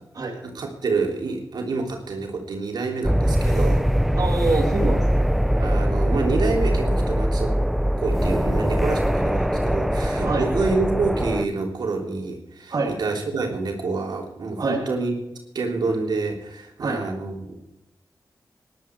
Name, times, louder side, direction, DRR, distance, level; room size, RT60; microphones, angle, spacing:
voice 1, 0.4-3.9 5.6-7.6 8.0-15.1 15.5-17.6, right 3 dB, 90° right, 1 dB, 3.2 m, -27 dB
sound 1, 3.0-11.5, equal, ahead, 0.8 m, -22 dB
voice 2, 4.2-5.3 10.2-10.4 12.7-12.9 14.6-14.8 16.8-17.0, right 3 dB, 60° right, 0 dB, 2.5 m, -25 dB
19.0 x 11.0 x 4.6 m, 0.91 s
wide cardioid pair, 85°, 7 cm